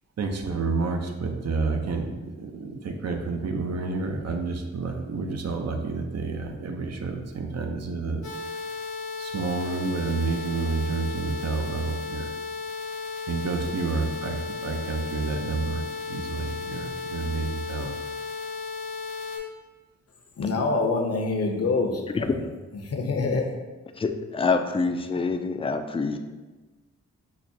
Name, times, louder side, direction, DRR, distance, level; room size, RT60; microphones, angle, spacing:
voice 1, 0.2-8.2 9.2-12.3 13.3-17.9, right 4 dB, 60° right, 4 dB, 0.6 m, -29 dB
sound 1, 8.2-19.4, left 4 dB, 90° left, 1.1 m, -34 dB
voice 2, 20.4-22.4 22.8-23.5, left 3 dB, 55° left, 2 dB, 0.7 m, -26 dB
voice 3, 23.9-26.2, left 4 dB, 20° left, 6 dB, 0.4 m, -26 dB
6.0 x 2.1 x 2.6 m, 1.2 s
cardioid pair, 45°, 29 cm